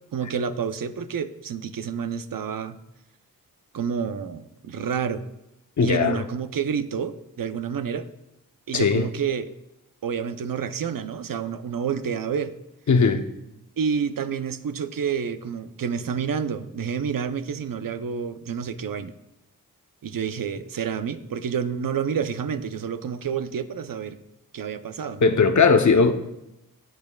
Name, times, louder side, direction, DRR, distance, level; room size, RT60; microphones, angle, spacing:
voice 1, 0.1-2.8 3.7-5.2 5.8-8.1 8.7-9.4 10.0-12.5 13.8-19.1 20.0-24.2 24.5-25.3, right 7 dB, 65° right, 11 dB, 0.7 m, -29 dB
voice 2, 5.8-6.2 8.7-9.0 12.9-13.2 25.2-26.1, left 5 dB, 50° left, 8 dB, 0.9 m, -18 dB
18.5 x 6.6 x 2.3 m, 0.90 s
cardioid pair, 50°, 37 cm